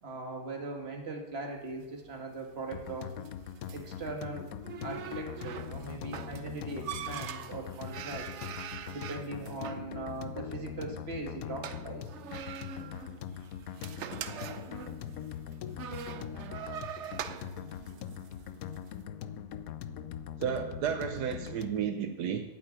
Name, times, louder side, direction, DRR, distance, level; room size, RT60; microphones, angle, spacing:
voice 1, 0.0-3.1 3.7-4.5 4.8-8.3 8.9-12.1, right 3 dB, 40° right, 2 dB, 2.0 m, -40 dB
sound 1, 1.7-18.9, right 9 dB, 60° right, 0.8 m, -44 dB
sound 2, 2.7-21.9, left 9 dB, 70° left, 1.0 m, -42 dB
voice 2, 20.4-22.4, right 8 dB, 80° right, 7 dB, 1.3 m, -32 dB
9.1 x 7.8 x 9.0 m, 1.1 s
omnidirectional pair, 1.7 m